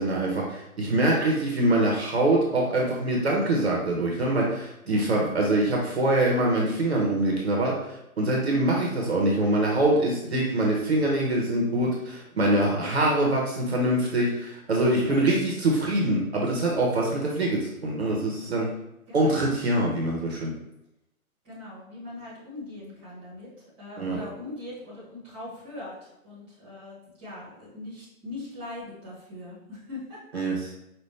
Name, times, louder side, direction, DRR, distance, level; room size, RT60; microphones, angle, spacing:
voice 1, 0.0-7.9 8.2-18.7 19.1-20.5 24.0-24.2 30.3-30.7, right 1 dB, 45° right, -2 dB, 1.0 m, -24 dB
voice 2, 19.1-19.5 21.4-23.5 23.8-30.2, left 2 dB, 10° right, -12 dB, 1.1 m, -41 dB
5.4 x 2.5 x 3.2 m, 0.85 s
hypercardioid pair, 180°, 44 cm